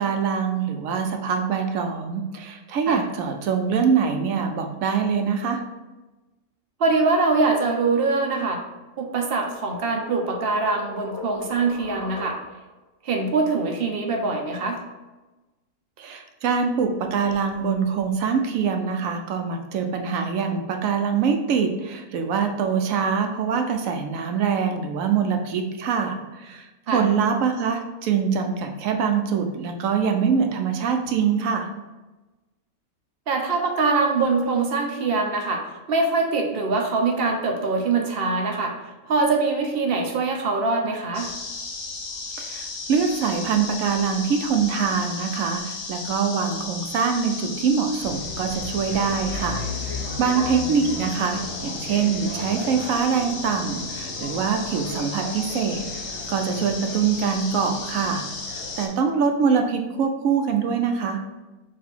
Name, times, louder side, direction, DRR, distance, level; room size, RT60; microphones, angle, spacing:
voice 1, 0.0-5.6 16.0-31.7 42.4-55.8 56.3-58.2 58.5-61.2, right 6 dB, 80° right, 4 dB, 1.0 m, -24 dB
voice 2, 6.8-8.6 9.0-12.4 13.0-14.8 26.9-27.0 33.3-35.6 35.9-38.7 39.1-41.3 50.4-50.5, right 3 dB, 55° right, 2 dB, 0.8 m, -23 dB
sound 1, 9.1-12.8, left 1 dB, 30° left, 0.5 m, -39 dB
sound 2, 41.1-58.9, left 3 dB, 75° left, 1.2 m, -34 dB
sound 3, 48.0-58.9, left 3 dB, 60° left, 1.1 m, -36 dB
4.1 x 2.7 x 4.4 m, 1.1 s
omnidirectional pair, 1.4 m